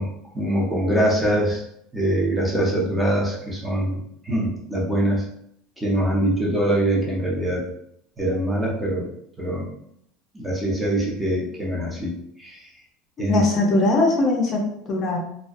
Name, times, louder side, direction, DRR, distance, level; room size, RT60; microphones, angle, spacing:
voice 1, 0.0-1.6 1.9-5.2 5.8-7.6 8.2-9.1 9.4-9.7 10.3-12.1 12.4-12.7 13.2-13.4, right 1 dB, 10° right, -4 dB, 0.7 m, -23 dB
voice 2, 13.2-15.2, left 2 dB, 35° left, -1 dB, 0.5 m, -21 dB
2.3 x 2.2 x 2.5 m, 0.73 s
supercardioid pair, 135°, 0 cm